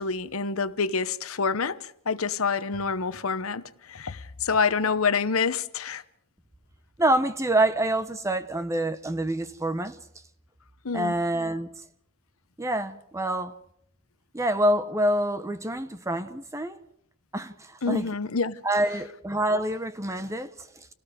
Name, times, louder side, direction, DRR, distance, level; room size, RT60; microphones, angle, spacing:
voice 1, 0.0-6.0 10.8-11.1 17.8-18.6, left 5 dB, 75° left, 0.9 m, -27 dB
voice 2, 7.0-10.0 10.9-11.7 12.6-13.5 14.3-16.8 17.3-18.1 18.6-20.9, right 1 dB, 15° right, 1.0 m, -26 dB
29.0 x 18.0 x 5.1 m
head